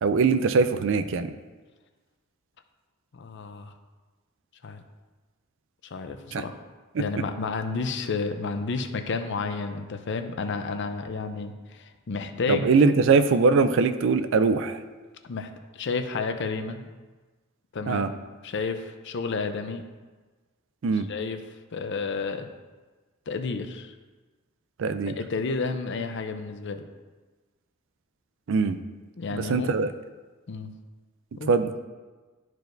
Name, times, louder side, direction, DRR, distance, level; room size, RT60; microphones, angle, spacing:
voice 1, 0.0-1.3 6.3-6.4 6.9-7.0 12.5-14.8 17.9-18.1 20.8-21.1 24.8-25.1 28.5-28.8 29.3-29.9 31.5-31.7, right 4 dB, 65° right, 11 dB, 0.4 m, -22 dB
voice 2, 3.1-3.7 4.6-4.8 5.9-6.5 7.0-12.7 15.3-16.9 17.7-18.1 18.4-19.8 21.1-21.4 21.7-22.5 23.3-23.9 25.2-26.8 29.2-29.7 30.5-30.7 31.4-31.5, left 4 dB, 60° left, 7 dB, 0.6 m, -31 dB
12.0 x 4.6 x 2.6 m, 1.3 s
head